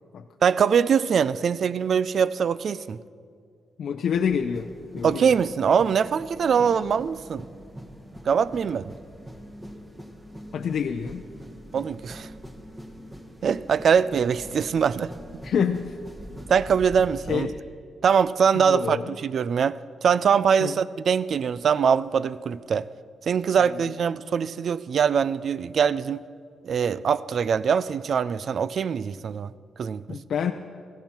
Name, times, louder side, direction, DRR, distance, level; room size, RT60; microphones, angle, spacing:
voice 1, 0.4-3.0 5.0-7.5 8.3-8.9 11.7-12.3 13.4-15.1 16.5-17.5 18.0-22.9 23.2-26.2 26.6-29.5 29.8-30.2, right 7 dB, 55° right, 0.4 m, -23 dB
voice 2, 3.8-4.7 4.9-5.3 10.5-11.3 15.4-16.0 17.3-17.6 18.5-19.1 20.6-20.8 23.6-23.8 30.1-30.5, left 7 dB, 65° left, 0.5 m, -27 dB
sound 1, 4.1-17.3, equal, 20° right, 1.7 m, -43 dB
16.5 x 15.5 x 4.4 m
cardioid pair, 105°, 0 cm